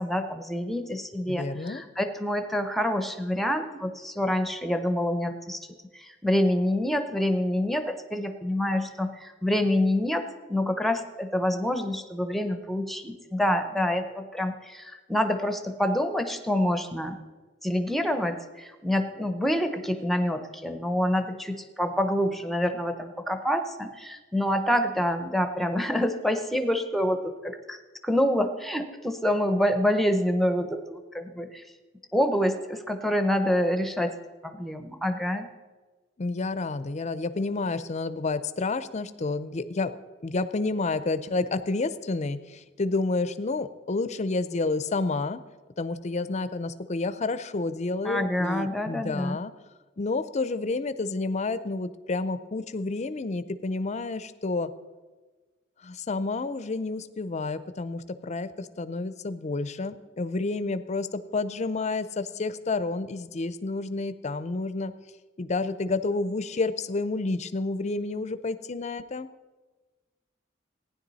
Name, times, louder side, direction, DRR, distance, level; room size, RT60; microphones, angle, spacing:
voice 1, 0.0-5.6 5.9-17.2 17.6-27.8 28.0-31.6 32.1-34.1 34.4-35.5 48.0-49.4, left 1 dB, ahead, 8 dB, 0.7 m, -27 dB
voice 2, 1.3-1.8 36.2-39.9 40.2-45.4 45.8-49.5 50.0-54.7 55.8-64.9 65.4-69.3, left 3 dB, 35° left, 13 dB, 0.5 m, -30 dB
15.5 x 10.0 x 4.1 m, 1.3 s
head